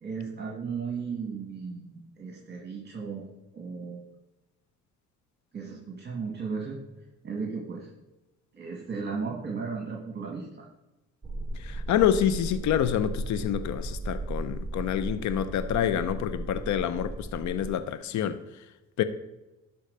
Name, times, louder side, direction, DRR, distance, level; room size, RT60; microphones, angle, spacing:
voice 1, 0.0-3.2 3.5-4.1 5.5-6.8 7.2-7.9 8.5-10.7, right 5 dB, 35° right, 2.1 m, -35 dB
sound 1, 11.2-17.7, right 2 dB, 10° right, 1.5 m, -36 dB
voice 2, 11.5-18.6 19.0-19.1, left 10 dB, 70° left, 0.7 m, -27 dB
11.5 x 4.0 x 6.6 m
cardioid pair, 90°, 30 cm